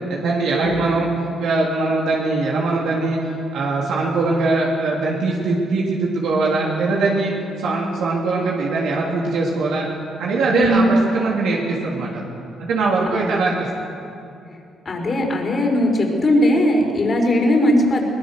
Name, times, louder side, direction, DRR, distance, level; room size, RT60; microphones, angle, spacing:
voice 1, 0.1-1.1 1.4-3.2 3.5-7.3 7.6-9.9 10.2-12.2 12.6-13.5, right 3 dB, 80° right, -4 dB, 3.3 m, -21 dB
voice 2, 10.5-10.9 13.0-13.3 14.8-18.1, left 1 dB, 40° left, 1 dB, 5.1 m, -19 dB
22.5 x 20.0 x 6.7 m, 2.6 s
cardioid pair, 90°, 0 cm